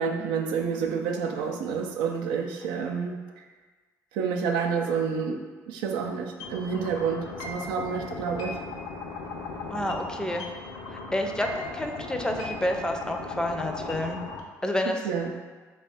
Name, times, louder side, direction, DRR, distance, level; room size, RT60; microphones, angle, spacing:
voice 1, 0.0-3.2 4.1-5.4 5.7-8.5 15.0-15.3, right 6 dB, 85° right, 3 dB, 0.4 m, -29 dB
sound 1, 6.4-14.4, left 3 dB, 85° left, 0.5 m, -37 dB
voice 2, 9.7-10.4 10.9-14.2 14.6-15.0, left 1 dB, 10° left, 3 dB, 0.4 m, -29 dB
3.2 x 2.4 x 4.2 m, 1.3 s
supercardioid pair, 70°, 8 cm